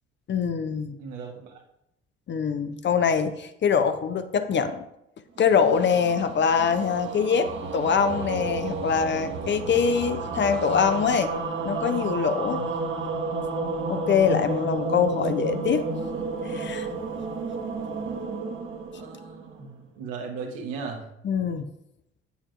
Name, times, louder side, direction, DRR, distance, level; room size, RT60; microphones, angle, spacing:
voice 1, 0.3-1.0 2.3-4.8 5.4-11.3 11.7-12.6 13.9-15.8 16.4-16.9 21.2-21.7, left 6 dB, 35° left, 10 dB, 0.6 m, -24 dB
voice 2, 1.0-1.6 12.6-12.7 18.9-21.1, right 5 dB, 70° right, 0 dB, 1.3 m, -37 dB
sound 1, 5.4-19.8, right 3 dB, 40° right, 1.1 m, -31 dB
8.6 x 7.0 x 2.5 m, 0.81 s
figure-of-eight pair, 50°, 31 cm